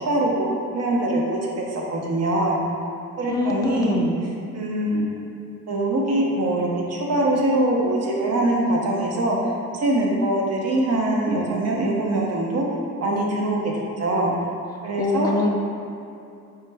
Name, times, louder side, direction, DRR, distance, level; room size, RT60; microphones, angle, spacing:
voice 1, 0.0-2.6 3.2-3.9 4.5-5.1 5.7-12.7 13.0-14.3 14.8-15.3, right 1 dB, 55° right, -2 dB, 0.7 m, -23 dB
voice 2, 3.3-4.2 15.0-15.5, left 3 dB, 15° left, -1 dB, 0.4 m, -23 dB
4.6 x 2.2 x 3.3 m, 2.6 s
cardioid pair, 90°, 30 cm